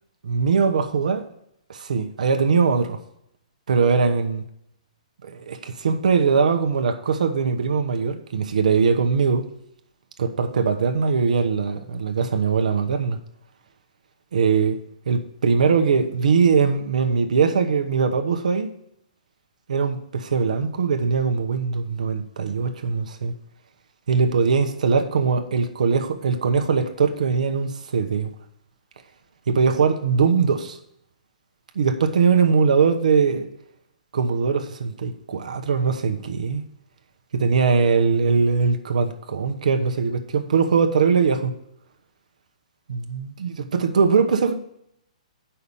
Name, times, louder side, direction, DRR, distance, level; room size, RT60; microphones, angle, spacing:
voice 1, 0.2-1.3 1.7-3.0 3.7-4.4 5.2-9.4 10.2-13.2 14.3-14.8 15.1-18.7 19.7-23.4 24.1-28.3 29.5-30.8 31.7-33.5 34.1-36.6 37.3-41.5 42.9-44.5, right 5 dB, 75° right, 1.1 m, -21 dB
8.3 x 5.7 x 5.4 m
hypercardioid pair, 145°, 4 cm